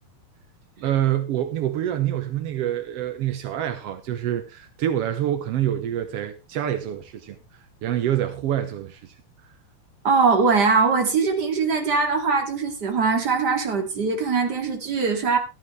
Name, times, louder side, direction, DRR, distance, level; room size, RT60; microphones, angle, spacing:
voice 1, 0.8-7.4 7.8-9.1, right 11 dB, 75° right, 1.3 m, -26 dB
voice 2, 10.0-15.4, right 4 dB, 30° right, 2.4 m, -21 dB
14.0 x 11.5 x 3.3 m
omnidirectional pair, 4.1 m